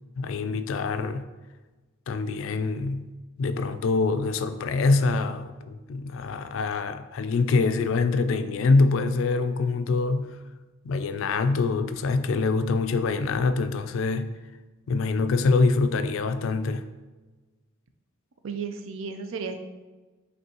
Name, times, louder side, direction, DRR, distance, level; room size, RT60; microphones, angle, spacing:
voice 1, 0.2-1.3 2.1-3.1 3.4-10.3 10.8-14.3 14.9-16.9, left 3 dB, 65° left, 0.3 m, -25 dB
voice 2, 18.4-19.6, right 5 dB, 65° right, 0.4 m, -33 dB
5.3 x 3.2 x 2.9 m
head